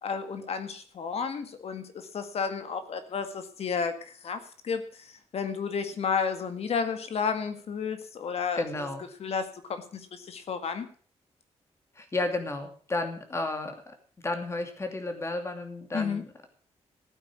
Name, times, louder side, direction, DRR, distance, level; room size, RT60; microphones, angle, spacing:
voice 1, 0.0-8.9 9.2-10.9 15.9-16.2, left 6 dB, 60° left, 9 dB, 1.9 m, -32 dB
voice 2, 8.6-9.1 12.0-13.9 14.2-16.5, left 2 dB, 25° left, 6 dB, 2.7 m, -32 dB
16.0 x 8.9 x 6.3 m, 0.43 s
wide cardioid pair, 150°, 12 cm